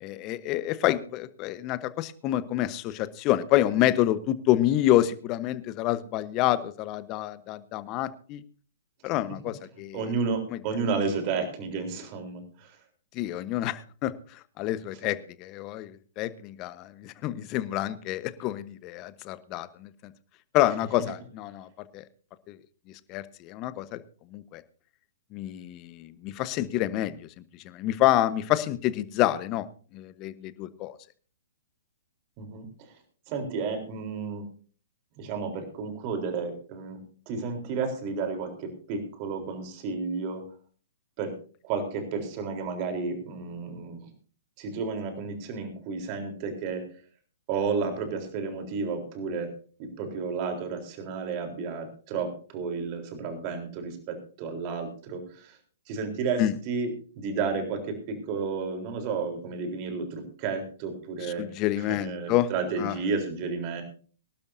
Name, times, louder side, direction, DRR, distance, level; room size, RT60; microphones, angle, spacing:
voice 1, 0.0-8.4 9.0-10.0 10.5-10.6 13.1-20.1 20.5-22.0 22.5-22.6 22.9-24.0 24.3-24.6 25.3-27.3 27.6-29.7 29.9-31.0 56.4-56.5 61.4-62.5 62.8-62.9, left 14 dB, 30° left, 14 dB, 1.1 m, -28 dB
voice 2, 9.9-12.8 32.4-32.9 33.3-34.5 35.2-37.0 37.3-40.5 41.2-41.4 41.6-44.1 44.6-46.9 47.5-49.5 49.8-55.6 55.9-56.9 57.2-61.5 61.8-63.8, right 5 dB, 40° right, 5 dB, 3.8 m, -32 dB
24.0 x 12.0 x 2.7 m, 0.40 s
hypercardioid pair, 125°, 0 cm